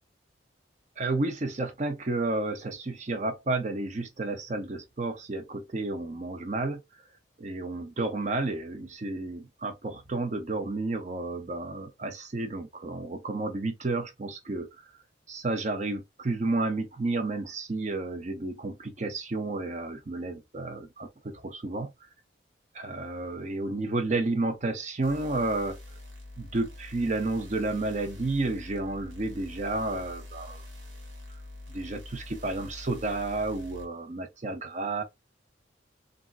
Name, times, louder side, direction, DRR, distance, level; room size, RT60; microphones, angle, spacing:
voice 1, 1.0-6.8 7.4-14.7 15.3-21.9 22.7-25.8 26.4-30.6 31.7-35.0, right 2 dB, 35° right, 0.6 m, -31 dB
sound 1, 25.0-33.9, left 2 dB, 85° right, 1.3 m, -45 dB
3.5 x 2.3 x 2.4 m
head